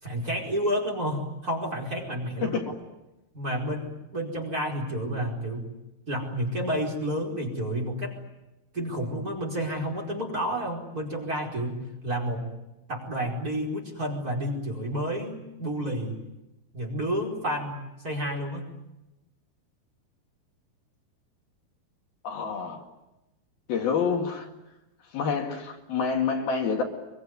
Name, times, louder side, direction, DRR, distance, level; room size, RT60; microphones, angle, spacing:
voice 1, 0.0-2.6 3.3-5.7 6.1-8.2 8.7-12.5 12.9-16.2 16.7-18.6, equal, 20° right, 1 dB, 4.9 m, -30 dB
voice 2, 22.2-22.8 23.7-24.5 25.1-26.8, left 6 dB, 65° left, 2 dB, 3.9 m, -27 dB
25.0 x 23.5 x 9.6 m, 0.98 s
omnidirectional pair, 4.7 m